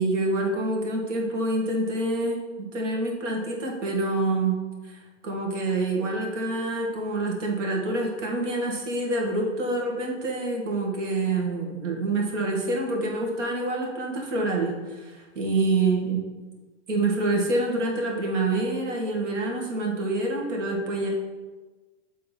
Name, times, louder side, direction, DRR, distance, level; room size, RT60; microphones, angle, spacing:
voice 1, 0.0-4.5 4.8-16.2 16.9-21.1, right 2 dB, 75° right, -1 dB, 1.8 m, -27 dB
7.3 x 3.9 x 4.1 m, 1.3 s
hypercardioid pair, 135°, 37 cm